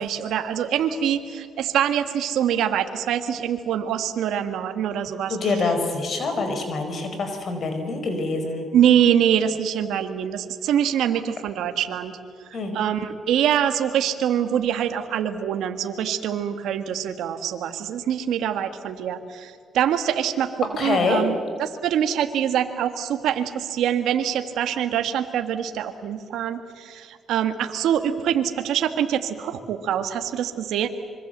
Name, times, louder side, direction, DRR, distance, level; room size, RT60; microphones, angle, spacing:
voice 1, 0.0-5.5 8.7-12.2 12.5-30.9, right 9 dB, 80° right, 7 dB, 1.6 m, -24 dB
voice 2, 5.3-8.6 12.5-12.7 20.8-21.2, left 3 dB, 55° left, 6 dB, 4.9 m, -25 dB
26.0 x 23.5 x 8.0 m, 2.2 s
cardioid pair, 90°, 0 cm